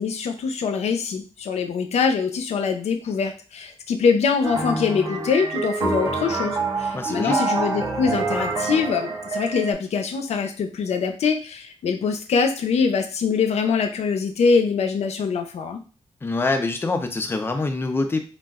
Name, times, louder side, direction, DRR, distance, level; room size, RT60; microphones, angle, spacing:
voice 1, 0.0-15.8, left 5 dB, 90° left, 5 dB, 0.4 m, -23 dB
sound 1, 4.4-9.7, right 3 dB, 45° right, 0.7 m, -26 dB
voice 2, 6.9-7.4 16.2-18.2, left 3 dB, 20° left, 6 dB, 0.4 m, -25 dB
2.3 x 2.1 x 3.4 m, 0.37 s
wide cardioid pair, 160°, 11 cm